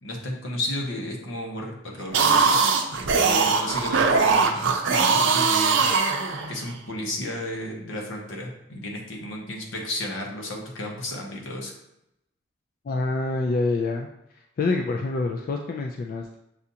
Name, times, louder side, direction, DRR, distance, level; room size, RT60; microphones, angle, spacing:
voice 1, 0.0-2.6 3.1-11.7, left 1 dB, 80° left, 0 dB, 1.0 m, -33 dB
sound 1, 2.0-6.7, right 4 dB, 70° right, 0.5 m, -21 dB
voice 2, 12.8-14.1 14.3-16.4, left 3 dB, 50° left, 2 dB, 0.3 m, -26 dB
6.8 x 2.4 x 2.7 m, 0.84 s
head